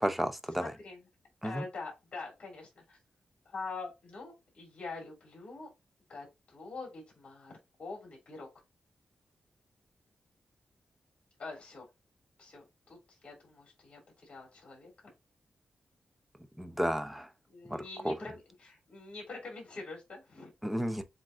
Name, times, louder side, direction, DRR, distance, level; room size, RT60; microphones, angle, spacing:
voice 1, 0.0-0.7 1.4-1.6 16.6-17.3 18.0-18.1 20.6-21.0, equal, 5° right, 0.6 m, -31 dB
voice 2, 0.6-1.0 1.4-3.0 3.5-5.7 6.1-7.5 7.8-8.5 11.4-11.8 12.4-13.0 13.2-14.9 17.5-20.5, left 3 dB, 45° left, 3.0 m, -44 dB
7.5 x 2.7 x 2.4 m
wide cardioid pair, 140°, 3 cm